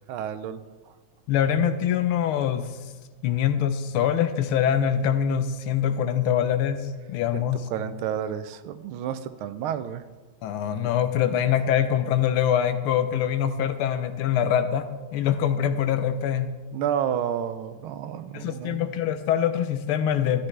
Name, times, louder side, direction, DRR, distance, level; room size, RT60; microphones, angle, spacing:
voice 1, 0.1-0.6 7.3-7.4 7.7-10.0 16.7-18.9, right 9 dB, 80° right, 12 dB, 1.4 m, -30 dB
voice 2, 1.3-2.7 3.2-7.7 10.4-14.9 15.1-16.5 18.3-20.5, left 9 dB, 80° left, 10 dB, 1.6 m, -24 dB
13.0 x 9.8 x 3.3 m, 1.3 s
omnidirectional pair, 2.4 m